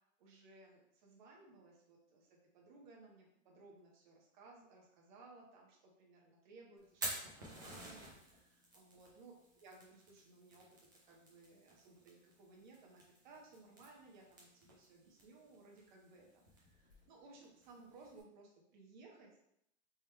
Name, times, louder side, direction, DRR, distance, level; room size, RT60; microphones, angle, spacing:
voice 1, 0.2-10.7 11.0-19.4, right 3 dB, 40° right, -1 dB, 0.8 m, -60 dB
Fire, 6.8-18.2, right 1 dB, 20° right, 0.3 m, -52 dB
3.5 x 2.2 x 4.4 m, 0.77 s
hypercardioid pair, 170°, 37 cm